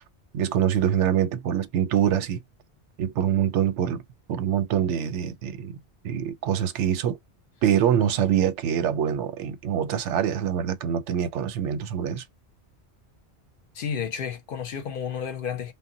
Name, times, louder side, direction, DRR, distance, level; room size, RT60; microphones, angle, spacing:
voice 1, 0.3-2.4 3.0-4.0 4.3-5.7 6.0-7.2 7.6-12.2, right 9 dB, 90° right, 0.9 m, -24 dB
voice 2, 13.7-15.7, left 7 dB, 60° left, 0.6 m, -31 dB
2.1 x 2.1 x 3.8 m
omnidirectional pair, 1.2 m